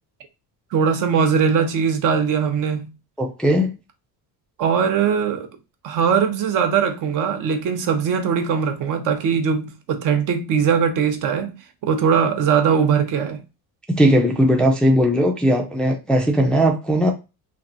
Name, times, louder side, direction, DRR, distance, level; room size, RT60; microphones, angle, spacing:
voice 1, 0.7-2.9 4.6-5.5 5.8-11.5 11.8-13.4, right 6 dB, 55° right, 0.7 m, -20 dB
voice 2, 3.2-3.7 13.9-17.1, equal, 5° left, 0.4 m, -18 dB
3.1 x 2.5 x 2.5 m
cardioid pair, 120°, 38 cm